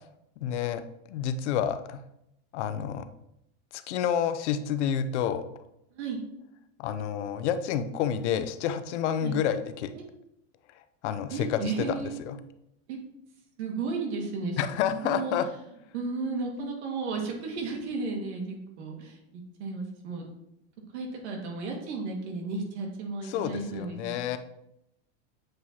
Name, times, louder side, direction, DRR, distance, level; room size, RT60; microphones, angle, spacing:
voice 1, 0.4-0.8 1.1-2.0 2.5-3.1 3.7-5.4 6.8-9.9 11.0-12.4 14.6-15.5 23.2-24.4, left 9 dB, 90° left, 11 dB, 0.6 m, -29 dB
voice 2, 11.3-12.1 12.9-13.0 13.6-14.6 14.9-15.4 15.9-20.2 20.9-24.1, right 4 dB, 80° right, 1 dB, 1.9 m, -34 dB
7.5 x 4.7 x 2.8 m, 0.80 s
supercardioid pair, 155°, 34 cm